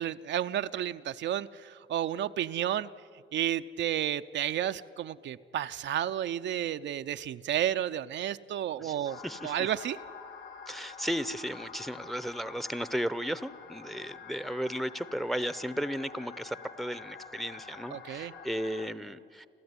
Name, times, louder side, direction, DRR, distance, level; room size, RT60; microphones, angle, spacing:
voice 1, 0.0-2.9 3.3-10.0 17.9-18.3, right 11 dB, 65° right, 10 dB, 0.6 m, -32 dB
sound 1, 9.1-18.9, left 5 dB, 65° left, 2.6 m, -47 dB
voice 2, 9.2-9.5 10.7-19.5, equal, ahead, 16 dB, 0.8 m, -35 dB
29.0 x 13.5 x 9.7 m, 2.4 s
cardioid pair, 90°, 20 cm